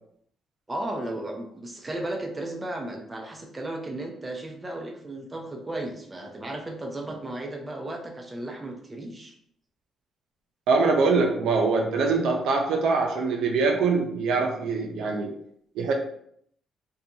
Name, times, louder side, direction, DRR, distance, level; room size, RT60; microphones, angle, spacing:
voice 1, 0.7-9.3, right 1 dB, 20° right, 2 dB, 0.5 m, -35 dB
voice 2, 10.7-15.3 15.8-15.9, right 4 dB, 80° right, 1 dB, 0.4 m, -23 dB
2.5 x 2.3 x 2.7 m, 0.69 s
cardioid pair, 90°, 0 cm